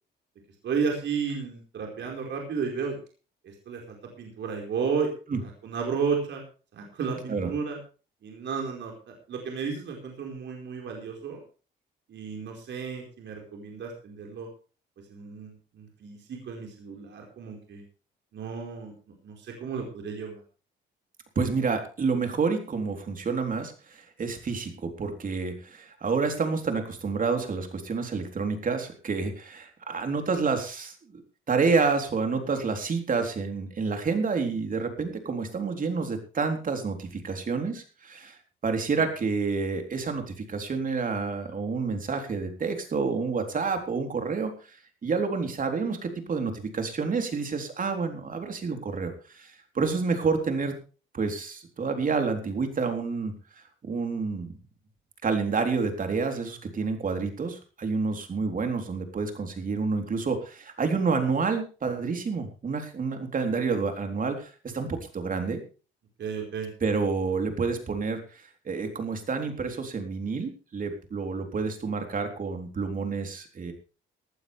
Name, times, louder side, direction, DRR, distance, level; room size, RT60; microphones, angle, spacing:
voice 1, 0.6-3.0 3.7-5.1 5.4-6.4 6.7-7.8 8.2-11.4 12.1-14.5 15.1-17.8 18.3-18.9 19.2-20.4 66.2-66.7, right 5 dB, 65° right, 1 dB, 4.8 m, -33 dB
voice 2, 21.4-31.2 31.5-50.7 51.1-54.5 55.2-65.6 66.8-73.7, right 4 dB, 45° right, 5 dB, 3.8 m, -29 dB
18.5 x 12.5 x 3.4 m, 0.36 s
cardioid pair, 90°, 20 cm